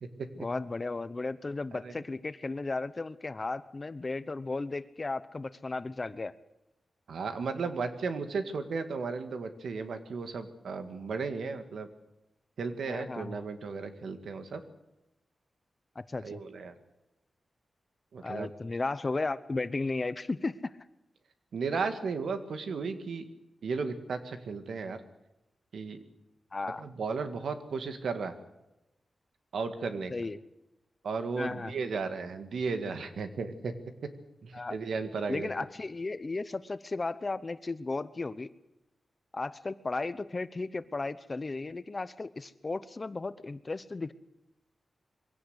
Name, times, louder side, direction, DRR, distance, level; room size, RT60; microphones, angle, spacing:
voice 1, 0.4-6.3 12.8-13.5 16.0-16.4 18.2-20.7 26.5-26.8 30.1-30.4 31.4-31.7 34.5-34.8 35.3-38.5 39.3-44.1, left 3 dB, 30° left, 14 dB, 0.8 m, -35 dB
voice 2, 7.1-11.9 12.6-14.6 16.2-16.7 18.1-18.5 21.5-23.3 23.6-25.0 25.7-26.0 26.8-28.3 29.5-30.1 31.0-33.7 34.4-35.5, right 4 dB, 90° right, 8 dB, 2.0 m, -35 dB
22.5 x 17.0 x 8.1 m, 0.93 s
wide cardioid pair, 130°, 0 cm